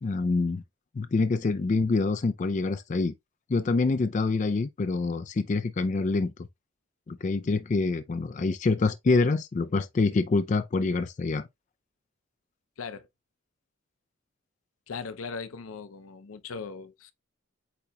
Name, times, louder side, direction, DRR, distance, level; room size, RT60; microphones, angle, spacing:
voice 1, 0.0-0.6 1.0-3.1 3.5-6.5 7.1-11.5, left 3 dB, 35° left, 0.3 m, -26 dB
voice 2, 12.8-13.1 14.9-17.1, left 5 dB, 85° left, 0.6 m, -39 dB
8.3 x 2.8 x 2.2 m
head